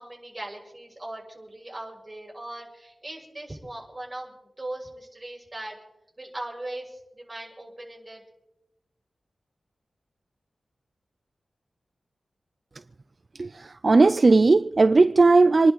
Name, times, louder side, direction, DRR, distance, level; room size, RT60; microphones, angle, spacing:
voice 1, 0.0-5.8 6.2-8.2, right 1 dB, 25° right, 6.9 m, -39 dB
voice 2, 13.3-15.7, right 3 dB, 50° right, 0.4 m, -17 dB
27.5 x 11.0 x 4.1 m
wide cardioid pair, 70°, 0 cm